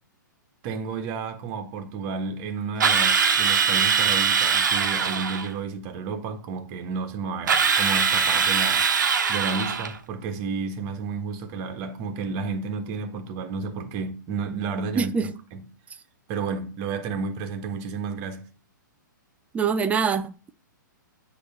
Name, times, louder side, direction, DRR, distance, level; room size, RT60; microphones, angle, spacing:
voice 1, 0.6-8.8 9.3-15.6 16.3-18.4, right 4 dB, 35° right, 1.4 m, -31 dB
Drill, 2.8-5.5 7.5-10.0, right 6 dB, 65° right, 1.0 m, -22 dB
voice 2, 15.0-15.3 19.5-20.5, right 6 dB, 15° right, 0.4 m, -24 dB
8.5 x 3.1 x 6.4 m
figure-of-eight pair, 120°, 11 cm